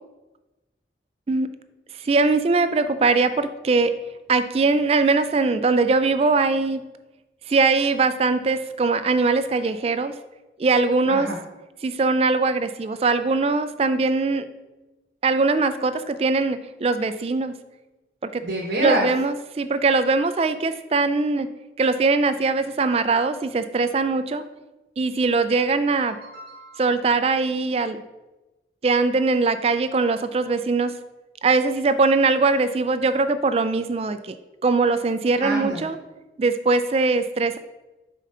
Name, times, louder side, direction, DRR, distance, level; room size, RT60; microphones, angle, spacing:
voice 1, 2.0-3.9 4.3-6.8 7.5-10.1 10.6-11.3 11.8-14.5 15.2-17.5 18.2-18.4 18.8-21.5 21.8-24.4 25.0-26.2 26.8-28.0 28.8-30.9 31.4-34.3 34.6-36.0 36.4-37.6, right 3 dB, 35° right, 11 dB, 0.3 m, -21 dB
voice 2, 11.0-11.4 18.4-19.1 26.0-26.8 35.4-35.9, right 1 dB, 85° right, -2 dB, 1.0 m, -27 dB
5.1 x 3.7 x 5.4 m, 1.1 s
head